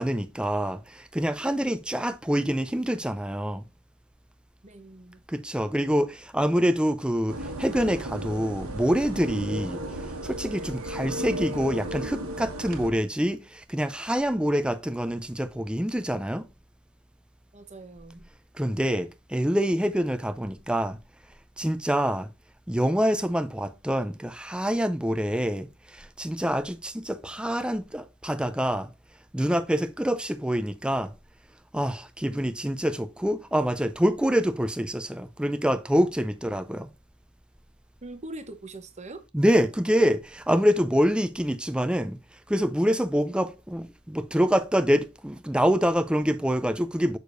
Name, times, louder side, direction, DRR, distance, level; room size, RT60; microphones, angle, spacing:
voice 1, 0.0-3.6 5.3-9.8 10.2-16.5 18.6-21.0 21.6-22.3 22.7-28.9 29.3-31.1 31.7-36.9 39.3-42.2 42.5-47.2, equal, 5° right, 0.5 m, -26 dB
voice 2, 4.6-5.2 17.5-18.3 38.0-39.2, right 2 dB, 30° right, 1.0 m, -42 dB
sound 1, 7.3-12.9, right 1 dB, 80° right, 1.3 m, -35 dB
6.7 x 6.5 x 2.5 m
head